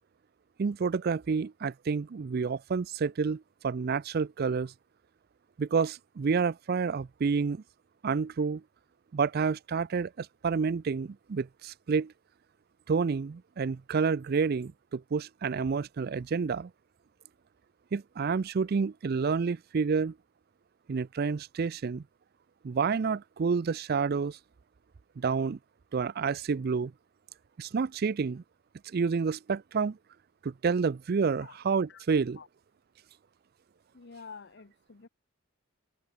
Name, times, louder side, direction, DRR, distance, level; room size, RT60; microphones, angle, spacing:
voice 1, 0.6-4.7 5.6-7.6 8.0-8.6 9.1-12.1 12.9-16.7 17.9-20.1 20.9-22.0 22.6-24.4 25.2-25.6 25.9-26.9 27.6-28.4 28.9-30.0 30.4-32.4, right 5 dB, 45° right, 0.4 m, -29 dB
voice 2, 33.9-35.1, left 5 dB, 55° left, 0.8 m, -48 dB
head